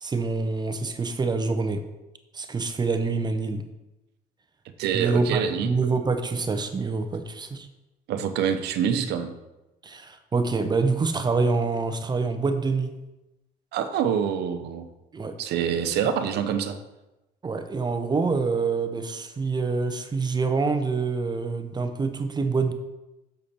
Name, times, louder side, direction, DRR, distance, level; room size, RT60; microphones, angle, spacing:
voice 1, 0.0-1.8 2.3-3.6 4.9-7.7 9.8-12.9 15.1-15.4 17.4-22.7, right 4 dB, 25° right, 8 dB, 0.7 m, -26 dB
voice 2, 4.8-5.7 8.1-9.3 13.7-14.9 15.4-16.8, right 8 dB, 80° right, 9 dB, 0.8 m, -26 dB
6.9 x 6.6 x 4.3 m, 1.0 s
cardioid pair, 110°, 17 cm